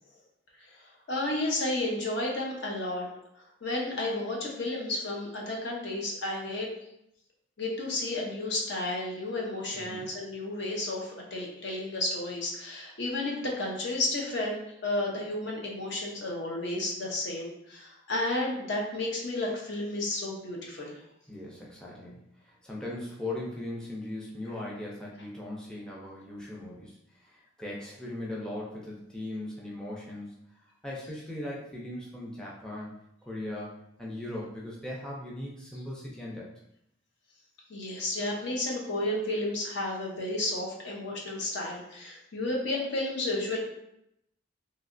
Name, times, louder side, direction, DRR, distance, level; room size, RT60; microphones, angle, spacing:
voice 1, 0.6-3.1 3.6-6.7 7.6-20.9 37.7-43.6, left 2 dB, 60° left, -1 dB, 0.7 m, -32 dB
voice 2, 9.7-10.1 21.3-30.4 30.8-33.0 33.3-36.5, left 1 dB, 5° left, -5 dB, 0.4 m, -39 dB
3.1 x 2.8 x 2.5 m, 0.80 s
head